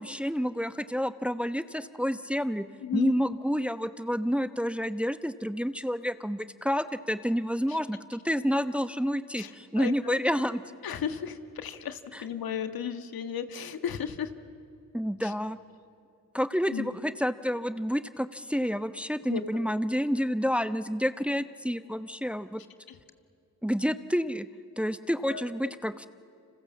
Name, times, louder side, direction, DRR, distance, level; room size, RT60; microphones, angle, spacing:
voice 1, 0.0-2.7 2.9-10.6 12.1-12.2 14.9-15.6 16.3-22.6 23.6-24.5 24.8-26.1, equal, 5° right, 12 dB, 1.0 m, -29 dB
voice 2, 2.8-3.2 7.7-7.8 9.4-9.5 9.8-10.2 10.8-14.3 15.2-15.3 16.7-16.9 19.3-19.7 22.9-23.0 25.3-25.7, left 8 dB, 65° left, 9 dB, 1.7 m, -34 dB
29.5 x 26.5 x 7.3 m, 2.5 s
supercardioid pair, 50°, 38 cm